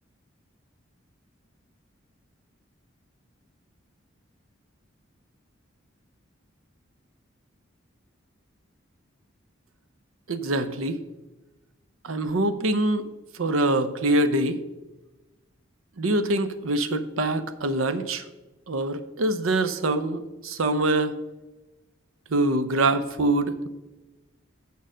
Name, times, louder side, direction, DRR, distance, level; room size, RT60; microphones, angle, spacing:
voice 1, 10.3-11.0 12.0-13.1 13.3-14.6 16.0-18.2 18.7-21.1 22.3-23.7, right 2 dB, 90° right, 11 dB, 0.7 m, -24 dB
6.7 x 6.6 x 6.3 m, 1.1 s
head